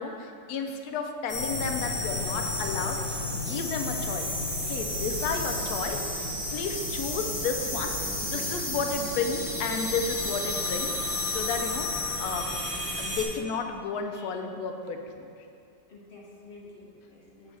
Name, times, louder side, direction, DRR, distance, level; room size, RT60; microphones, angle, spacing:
voice 1, 0.0-4.3 4.6-15.3, left 5 dB, 75° left, 4 dB, 1.0 m, -33 dB
sound 1, 1.3-13.2, left 1 dB, 20° left, 1.4 m, -31 dB
voice 2, 15.9-17.6, left 3 dB, 40° left, -4 dB, 0.9 m, -49 dB
6.9 x 4.8 x 4.1 m, 2.5 s
omnidirectional pair, 1.8 m